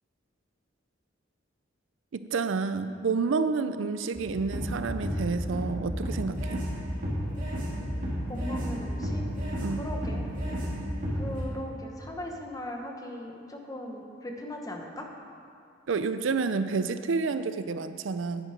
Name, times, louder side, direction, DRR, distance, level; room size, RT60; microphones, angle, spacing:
voice 1, 2.1-6.7 9.6-9.8 15.9-18.5, right 4 dB, 80° right, 11 dB, 0.5 m, -29 dB
sound 1, 4.1-11.4, equal, 45° right, 2.9 m, -32 dB
voice 2, 8.3-10.5 11.1-15.1, left 1 dB, 20° left, 1 dB, 1.1 m, -39 dB
9.8 x 9.1 x 5.1 m, 2.3 s
head